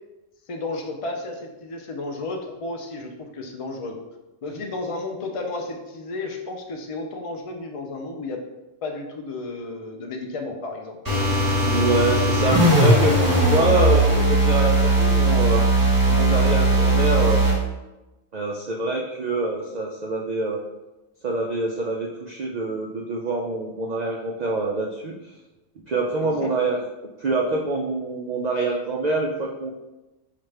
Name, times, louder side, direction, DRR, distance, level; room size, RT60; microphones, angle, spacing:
voice 1, 0.5-3.9 4.4-8.4 8.8-11.0 26.2-26.5, left 2 dB, 55° left, 2 dB, 0.3 m, -32 dB
sound 1, 11.0-17.6, right 1 dB, 20° right, 0.8 m, -19 dB
voice 2, 11.6-13.2 13.4-15.6 16.1-17.4 18.3-20.6 21.2-25.3 25.9-26.8 27.2-29.7, right 3 dB, 90° right, -2 dB, 0.3 m, -25 dB
5.8 x 2.4 x 3.2 m, 1.0 s
omnidirectional pair, 1.3 m